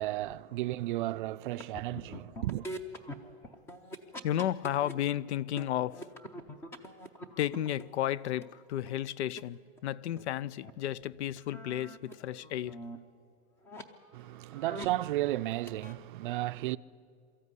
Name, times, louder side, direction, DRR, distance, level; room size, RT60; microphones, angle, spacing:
voice 1, 0.0-2.7 14.1-16.8, right 16 dB, 50° right, 0.5 m, -33 dB
sound 1, 1.5-4.9 5.3-8.5 8.9-9.0 9.4-9.5 9.8-9.9 10.2-10.3 10.6-10.7 11.0-12.1 12.4-13.0 13.6-13.8 14.4-15.1 15.4-15.9, equal, 10° left, 0.5 m, -44 dB
voice 2, 4.2-6.1 7.4-12.8, left 12 dB, 85° left, 0.6 m, -33 dB
23.5 x 14.0 x 9.7 m
supercardioid pair, 170°, 33 cm